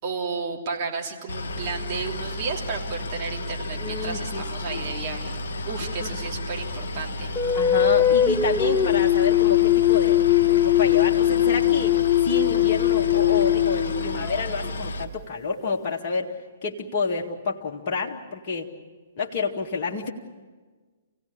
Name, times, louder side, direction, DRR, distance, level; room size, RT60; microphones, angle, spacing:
voice 1, 0.0-7.3, right 5 dB, 35° right, -1 dB, 3.3 m, -33 dB
Boat Water vehicle, 1.3-15.0, left 1 dB, 55° left, 1.6 m, -32 dB
voice 2, 3.7-4.4 4.7-4.8 5.8-6.2 7.5-12.0 12.2-16.3 16.6-18.7 19.2-20.1, left 4 dB, 35° left, -1 dB, 2.1 m, -29 dB
sound 1, 7.3-14.7, left 12 dB, 10° left, 0.8 m, -20 dB
27.5 x 17.0 x 8.7 m, 1.4 s
figure-of-eight pair, 120°, 0 cm